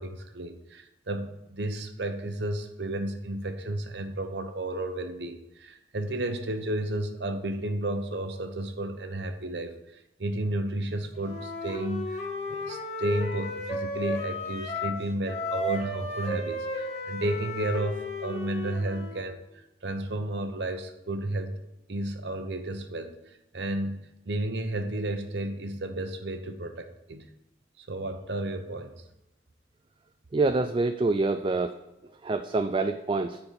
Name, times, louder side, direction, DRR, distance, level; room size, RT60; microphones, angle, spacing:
voice 1, 0.0-12.2 12.5-19.4 19.8-21.6 21.9-23.2 23.5-27.3 27.8-28.9, right 1 dB, 70° right, 7 dB, 0.9 m, -32 dB
Wind instrument woodwind instrument, 11.2-15.0 15.3-19.3, left 1 dB, 40° left, 1.6 m, -34 dB
voice 2, 30.3-31.7 32.2-33.4, right 3 dB, 30° right, 8 dB, 0.3 m, -26 dB
9.7 x 4.4 x 6.8 m, 0.91 s
head